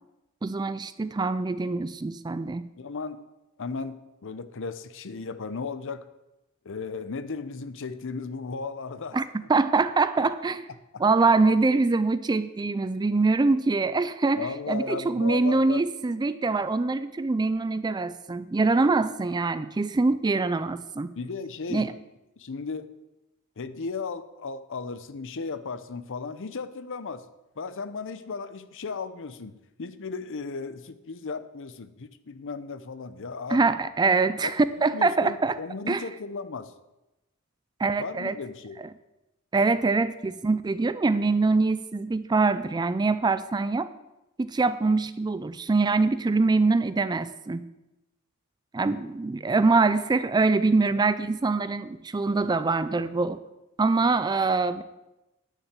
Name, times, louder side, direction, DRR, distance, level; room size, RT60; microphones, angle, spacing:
voice 1, 0.4-2.7 9.1-9.2 9.5-10.7 11.0-21.1 21.7-21.9 33.5-35.6 35.9-36.0 37.8-38.4 38.8-38.9 39.5-43.9 44.4-47.7 48.7-53.4 53.8-54.8, right 3 dB, 20° right, 14 dB, 0.4 m, -24 dB
voice 2, 2.8-3.2 3.6-6.1 6.6-9.2 10.9-11.0 14.4-15.8 21.1-21.9 22.4-22.9 23.6-27.3 27.6-29.5 29.8-33.6 34.4-34.5 34.9-36.7 38.0-38.8, left 4 dB, 60° left, 13 dB, 0.7 m, -35 dB
9.9 x 6.5 x 7.5 m, 0.98 s
head